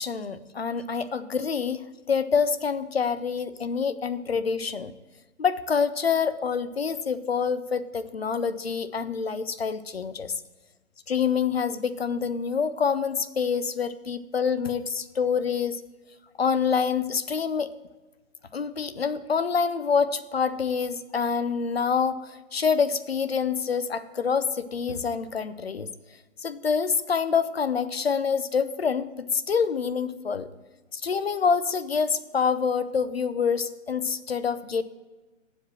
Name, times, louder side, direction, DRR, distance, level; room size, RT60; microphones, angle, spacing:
voice 1, 0.0-1.8 2.1-4.9 5.4-10.3 11.1-15.8 16.4-17.7 18.5-25.9 26.4-30.5 30.9-34.8, left 6 dB, 50° left, 14 dB, 0.5 m, -26 dB
8.0 x 4.9 x 7.5 m, 1.2 s
hypercardioid pair, 175°, 39 cm